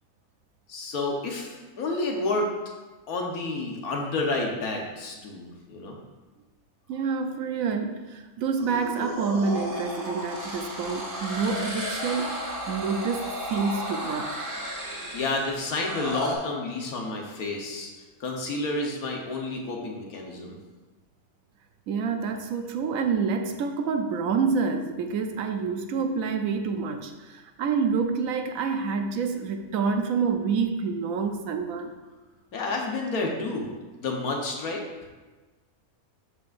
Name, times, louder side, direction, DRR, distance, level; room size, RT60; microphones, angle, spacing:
voice 1, 0.7-2.5 3.1-6.0 15.1-17.9 18.2-20.6 32.5-33.7 34.0-34.8, left 2 dB, 85° left, 1 dB, 1.5 m, -30 dB
voice 2, 6.9-14.4 21.9-31.9, right 5 dB, 75° right, 6 dB, 1.0 m, -28 dB
sound 1, 8.6-16.4, equal, 40° right, 1.4 m, -34 dB
11.5 x 5.0 x 2.5 m, 1.2 s
omnidirectional pair, 1.5 m